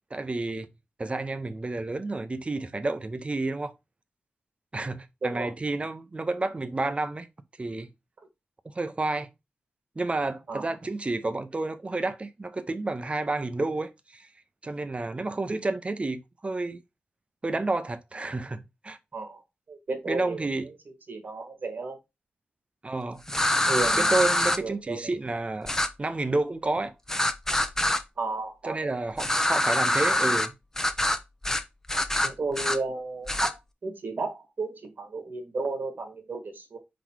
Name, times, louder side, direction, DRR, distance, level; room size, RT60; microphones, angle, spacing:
voice 1, 0.1-0.7 1.0-3.7 4.7-7.3 7.6-7.9 8.6-9.3 10.0-14.3 14.6-16.8 17.4-19.0 20.1-20.7 22.8-23.2 24.0-25.7 26.0-26.9 28.6-30.5, right 2 dB, 35° right, 0.8 m, -30 dB
voice 2, 5.2-5.5 10.5-10.7 19.1-19.4 19.7-20.7 21.1-22.0 23.7-24.1 24.6-25.1 28.2-28.9 32.2-33.6 33.8-36.8, right 3 dB, 70° right, 1.8 m, -33 dB
sound 1, 23.3-24.6 25.7-25.9 27.1-28.0 29.2-30.5 30.8-31.2 31.4-31.6 31.9-32.8 33.3-33.5, left 1 dB, 15° left, 0.7 m, -24 dB
4.9 x 4.1 x 4.6 m
wide cardioid pair, 80°, 4 cm